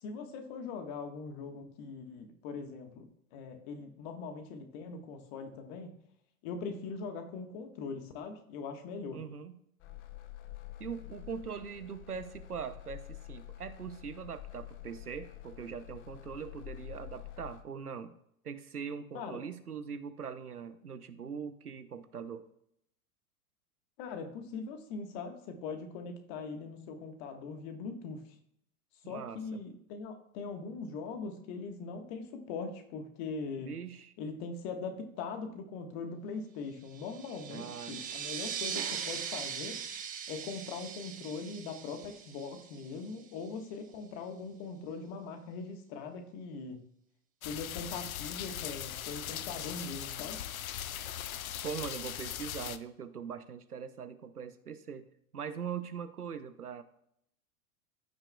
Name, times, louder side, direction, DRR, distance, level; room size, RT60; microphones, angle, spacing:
voice 1, 0.0-3.0 3.3-5.9 6.4-9.2 19.1-19.4 24.0-28.2 29.0-33.7 34.2-39.8 40.3-46.9 47.4-50.4, left 4 dB, 45° left, 6 dB, 1.5 m, -41 dB
voice 2, 9.1-9.6 10.8-18.2 18.4-22.5 29.0-29.6 33.6-34.1 37.5-38.0 51.6-55.1 55.3-56.8, right 7 dB, 85° right, 11 dB, 0.8 m, -41 dB
sound 1, 9.8-17.6, left 14 dB, 30° left, 0.6 m, -48 dB
sound 2, 36.9-43.2, right 7 dB, 20° right, 0.9 m, -40 dB
sound 3, 47.4-52.8, left 11 dB, 70° left, 0.6 m, -39 dB
14.5 x 5.8 x 2.3 m, 0.71 s
figure-of-eight pair, 95°, 44 cm